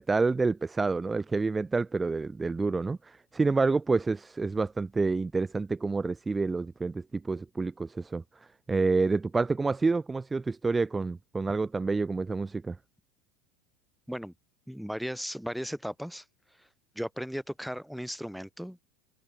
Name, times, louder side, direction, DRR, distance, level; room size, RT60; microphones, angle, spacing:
voice 1, 0.0-8.2 8.7-12.8, right 3 dB, 15° right, 6.1 m, -28 dB
voice 2, 14.7-16.2 16.6-16.7 17.0-18.8, equal, ahead, 7.6 m, -36 dB
hypercardioid pair, 85°, 0 cm